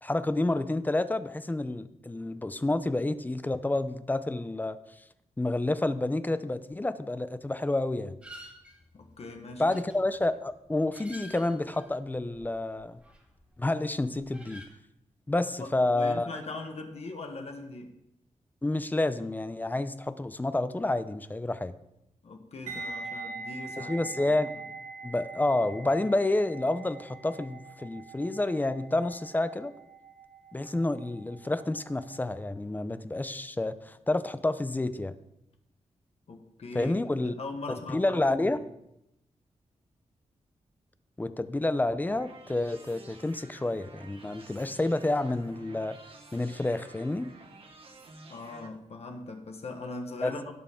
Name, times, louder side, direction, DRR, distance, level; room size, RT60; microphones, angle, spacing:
voice 1, 0.0-4.8 5.4-8.1 9.6-13.0 13.6-14.6 15.3-16.3 18.6-21.7 23.8-24.5 25.0-29.7 30.5-35.1 36.7-37.3 37.9-38.6 41.2-46.0 46.3-47.3 50.2-50.3, left 2 dB, 15° left, 13 dB, 0.5 m, -29 dB
sound 1, 8.2-13.6 13.9-14.7, equal, 10° right, 2.0 m, -51 dB
voice 2, 8.9-9.8 15.6-18.0 22.2-24.0 36.3-38.6 48.3-50.5, left 3 dB, 55° left, 4 dB, 1.3 m, -40 dB
sound 2, 22.7-31.6 31.9-32.2, right 4 dB, 85° right, 2.9 m, -43 dB
sound 3, 41.8-48.7, right 3 dB, 50° right, 1.4 m, -51 dB
17.0 x 6.7 x 3.6 m, 0.84 s
wide cardioid pair, 130°, 12 cm